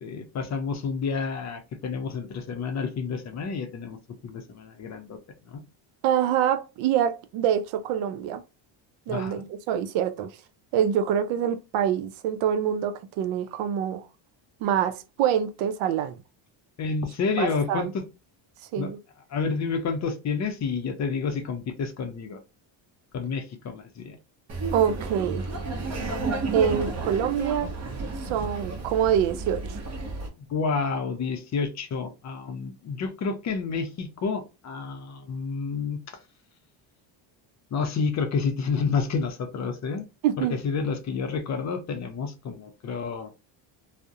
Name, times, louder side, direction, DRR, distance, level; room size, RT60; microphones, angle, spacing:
voice 1, 0.0-4.0 4.2-5.2 5.4-5.6 9.1-9.5 16.8-18.0 18.7-18.9 19.3-22.4 23.1-24.2 30.4-36.2 37.7-40.1 40.4-43.3, left 5 dB, 40° left, 0.5 m, -29 dB
voice 2, 6.0-8.4 9.1-10.3 10.7-14.1 14.6-16.2 17.4-17.9 18.7-19.0 24.7-25.4 26.5-27.7 28.2-29.8 40.2-40.6, right 9 dB, 85° right, 0.5 m, -25 dB
Laughter, 24.5-30.3, right 3 dB, 35° right, 0.7 m, -32 dB
2.3 x 2.0 x 2.7 m
cardioid pair, 110°, 47 cm